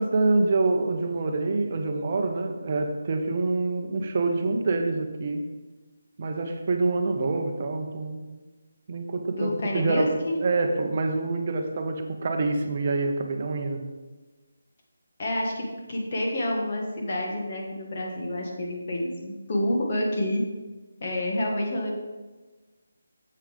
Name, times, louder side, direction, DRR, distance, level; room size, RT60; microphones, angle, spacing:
voice 1, 0.0-5.5 6.2-8.3 8.9-13.9, right 3 dB, 35° right, 4 dB, 0.8 m, -26 dB
voice 2, 9.3-10.4 15.2-20.5 21.0-22.0, left 1 dB, 35° left, -1 dB, 1.6 m, -28 dB
7.6 x 5.5 x 5.1 m, 1.2 s
figure-of-eight pair, 170°, 0 cm